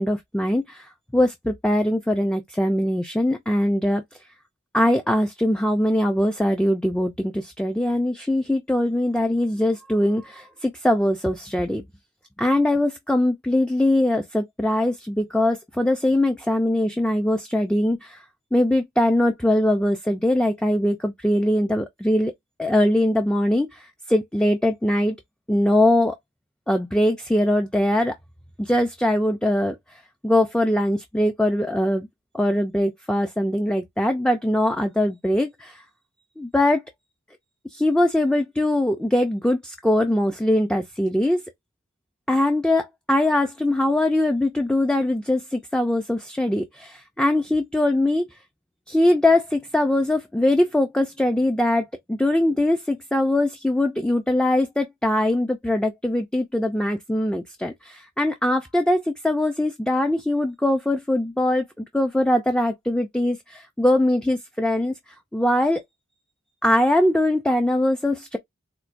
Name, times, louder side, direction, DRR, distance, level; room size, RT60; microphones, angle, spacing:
voice 1, 0.0-4.2 4.7-11.8 12.4-18.2 18.5-22.3 22.6-25.2 25.5-26.2 26.7-28.1 28.6-32.1 32.3-35.8 36.4-36.8 37.7-41.4 42.3-48.3 48.9-64.9 65.3-65.8 66.6-68.4, left 1 dB, 5° left, 0.3 m, -22 dB
4.4 x 2.2 x 2.5 m
head